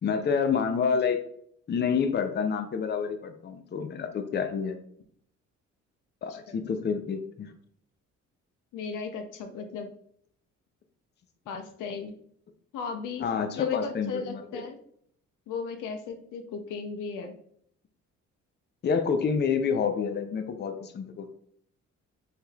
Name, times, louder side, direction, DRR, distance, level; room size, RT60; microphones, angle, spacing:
voice 1, 0.0-1.2 1.7-4.8 6.2-7.5 13.2-14.6 18.8-21.3, left 6 dB, 35° left, 7 dB, 0.5 m, -28 dB
voice 2, 8.7-9.9 11.5-12.2 12.7-13.3 13.6-14.8 15.5-17.4, left 5 dB, 90° left, 6 dB, 0.7 m, -35 dB
4.5 x 3.4 x 2.3 m, 0.65 s
cardioid pair, 90°, 30 cm